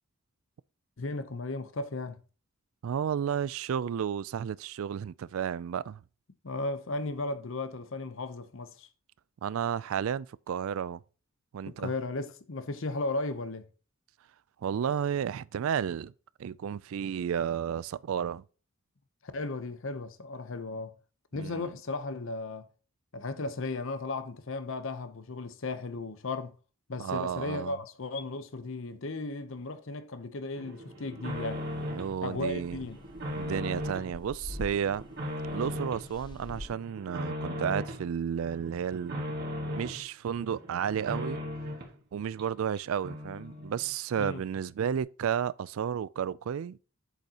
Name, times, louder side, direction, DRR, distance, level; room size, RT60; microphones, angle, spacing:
voice 1, 1.0-2.2 6.4-8.9 11.7-13.7 19.2-20.9 21.3-22.7 23.1-26.5 26.9-31.6 32.2-33.0 44.2-44.4, left 2 dB, 60° left, 0.7 m, -35 dB
voice 2, 2.8-6.0 9.4-11.0 11.5-11.9 14.6-16.1 16.4-18.4 21.3-21.7 27.0-27.8 31.9-32.9 33.4-35.1 35.5-39.4 39.7-41.4 42.1-46.8, right 8 dB, 65° right, 0.3 m, -32 dB
sound 1, 30.6-32.2 32.5-34.1 34.5-36.1 36.5-38.0 38.4-40.0 40.4-42.0 42.4-42.5 42.8-42.9 43.0-43.9 44.2-44.3, left 1 dB, 45° right, 1.8 m, -38 dB
sound 2, 31.3-36.7, left 2 dB, 20° left, 0.5 m, -46 dB
8.1 x 6.7 x 2.9 m
head